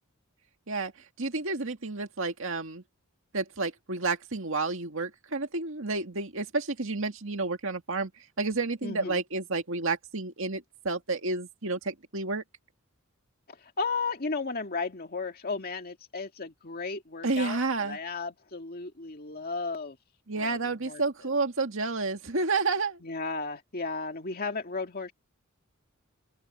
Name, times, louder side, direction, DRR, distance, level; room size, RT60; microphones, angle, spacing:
voice 1, 1.2-2.8 3.3-12.4 17.2-18.0 20.3-23.0, right 3 dB, 70° right, 2.2 m, -30 dB
voice 2, 8.8-9.2 13.5-20.0 20.4-21.0 23.0-25.1, left 4 dB, 45° left, 2.2 m, -34 dB
open air
head